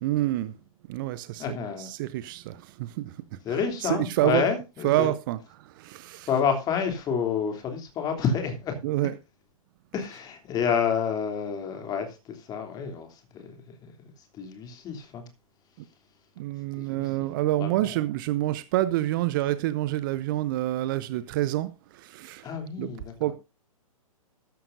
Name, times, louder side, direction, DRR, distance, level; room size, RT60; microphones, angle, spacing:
voice 1, 0.0-0.5 0.9-3.2 3.8-4.5 4.8-6.3 8.8-9.1 16.4-22.5 22.8-22.9 23.2-23.3, right 15 dB, 35° right, 0.8 m, -27 dB
voice 2, 1.4-1.9 3.4-5.1 6.3-8.8 9.9-13.5 13.8-13.9 14.3-15.3 16.8-17.3 17.6-18.0 22.4-23.3, left 6 dB, 20° left, 3.1 m, -29 dB
14.0 x 13.0 x 2.7 m
figure-of-eight pair, 115°, 18 cm